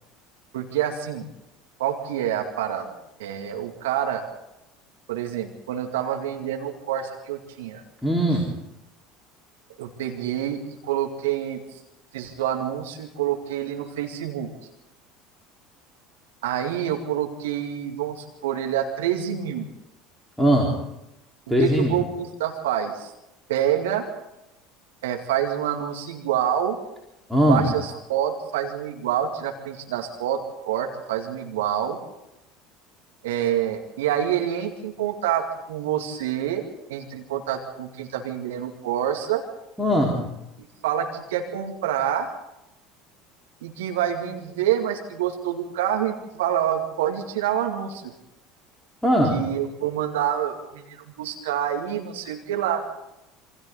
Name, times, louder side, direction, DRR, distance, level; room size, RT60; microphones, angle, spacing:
voice 1, 0.5-1.3 1.8-2.9 3.2-4.2 5.1-7.8 9.8-11.6 12.1-14.5 16.4-19.7 21.6-23.1 23.5-24.1 25.0-26.8 27.4-32.0 33.2-36.6 36.9-39.4 40.8-42.3 43.6-48.0 49.3-52.9, right 10 dB, 70° right, 3 dB, 2.4 m, -27 dB
voice 2, 8.0-8.5 20.4-20.8 21.5-21.9 27.3-27.7 39.8-40.2 49.0-49.4, equal, ahead, -2 dB, 4.3 m, -20 dB
27.5 x 25.5 x 4.0 m, 0.90 s
figure-of-eight pair, 65°, 0 cm